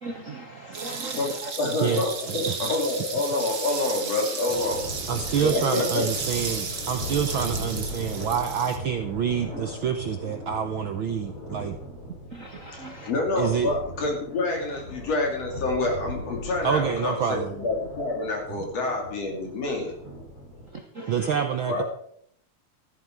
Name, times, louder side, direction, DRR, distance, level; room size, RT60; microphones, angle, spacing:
voice 1, 0.0-1.2 12.3-13.1 21.0-21.1, right 2 dB, 85° right, 3 dB, 0.7 m, -38 dB
sound 1, 0.7-8.8, right 5 dB, 35° right, 1.8 m, -34 dB
voice 2, 1.1-4.9 5.4-6.1 13.1-19.9 21.7-21.8, left 2 dB, 55° left, 1 dB, 4.1 m, -27 dB
voice 3, 1.8-2.6 5.1-11.8 13.4-13.7 16.6-17.5 18.5-18.6 21.1-21.8, right 8 dB, 65° right, 6 dB, 1.2 m, -27 dB
Thunder, 4.5-20.7, equal, 85° left, 6.5 m, -39 dB
15.0 x 12.5 x 4.7 m, 0.67 s
omnidirectional pair, 3.4 m